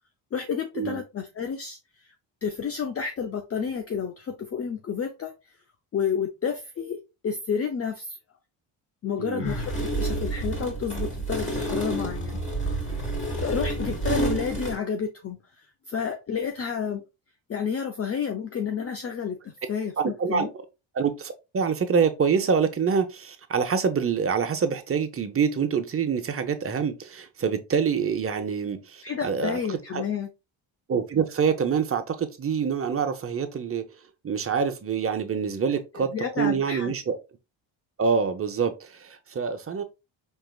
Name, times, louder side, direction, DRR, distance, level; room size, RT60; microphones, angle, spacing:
voice 1, 0.3-1.8 2.4-5.3 5.9-7.0 7.2-8.2 9.0-12.8 13.4-17.0 17.5-20.5 29.0-30.3 36.0-37.0, left 7 dB, 30° left, 0.5 m, -30 dB
voice 2, 9.2-9.5 20.0-20.5 20.9-30.0 30.9-33.8 34.2-36.1 36.4-37.2 38.0-39.8, right 6 dB, 30° right, 0.7 m, -26 dB
Sigh, 9.4-9.9, left 3 dB, 70° left, 1.4 m, -34 dB
sound 1, 9.4-14.7, right 2 dB, 15° left, 2.1 m, -29 dB
4.5 x 3.0 x 2.3 m
cardioid pair, 80°, 46 cm